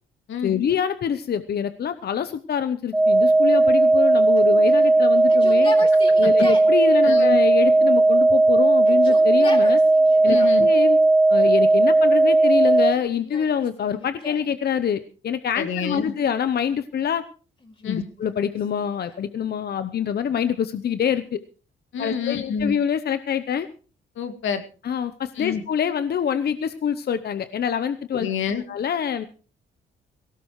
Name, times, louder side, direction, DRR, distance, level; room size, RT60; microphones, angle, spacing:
voice 1, 0.4-5.7 6.2-9.8 10.2-11.0 11.3-17.2 17.9-21.4 22.0-23.7 24.8-28.3 28.7-29.3, left 8 dB, 55° left, 12 dB, 0.8 m, -25 dB
sound 1, 2.9-12.9, right 2 dB, 5° right, 0.7 m, -16 dB
Yell, 4.4-6.7 7.6-8.4 8.8-10.6 11.4-12.0 12.7-14.5 15.9-16.8 17.6-19.3, left 3 dB, 30° left, 4.5 m, -39 dB
voice 2, 7.0-7.4 10.3-10.7 15.6-16.1 17.8-18.1 21.9-22.8 24.2-24.6 25.4-25.6 28.1-28.6, left 7 dB, 85° left, 7 dB, 2.1 m, -28 dB
18.0 x 17.0 x 3.2 m, 0.38 s
cardioid pair, 75°, 20 cm